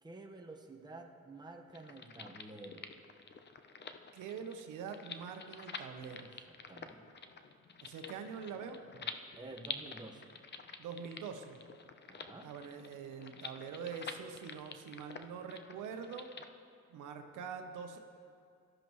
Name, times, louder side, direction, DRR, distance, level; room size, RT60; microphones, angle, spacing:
voice 1, 0.0-2.9 6.2-7.0 9.0-9.1 9.3-10.3 12.1-12.5, right 2 dB, 15° right, 0 dB, 1.3 m, -51 dB
sound 1, 1.7-16.5, left 5 dB, 35° left, 0.8 m, -48 dB
voice 2, 4.1-6.3 7.8-8.8 10.8-11.6 12.4-16.3 16.9-18.0, right 6 dB, 85° right, 5 dB, 1.0 m, -44 dB
17.5 x 13.0 x 3.1 m, 2.2 s
cardioid pair, 90°, 30 cm